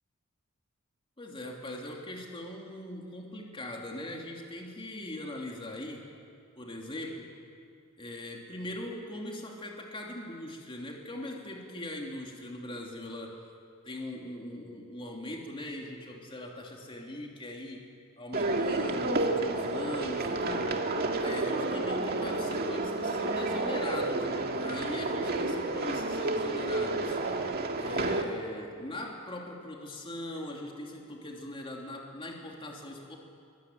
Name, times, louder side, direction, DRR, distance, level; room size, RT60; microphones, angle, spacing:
voice 1, 1.2-6.1 6.5-7.3 8.0-13.4 13.8-17.9 18.2-20.8 21.2-27.4 27.8-33.2, left 1 dB, 25° left, 0 dB, 3.0 m, -40 dB
sound 1, 18.3-28.2, right 2 dB, 45° right, 2.1 m, -30 dB
24.0 x 21.0 x 9.3 m, 2.3 s
head